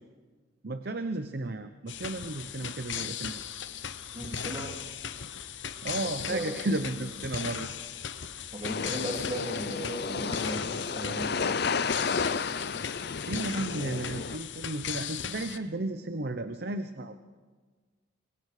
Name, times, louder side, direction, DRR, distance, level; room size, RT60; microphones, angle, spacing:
voice 1, 0.6-3.6 5.8-7.7 13.2-17.4, right 2 dB, 55° right, 9 dB, 0.8 m, -34 dB
sound 1, 1.9-15.6, left 8 dB, 70° left, 1.0 m, -38 dB
voice 2, 4.1-4.8 6.0-6.6 8.5-11.6, right 1 dB, 30° right, 1 dB, 2.6 m, -37 dB
sound 2, 8.6-14.4, left 5 dB, 55° left, 0.6 m, -32 dB
27.0 x 23.5 x 5.0 m, 1.4 s
head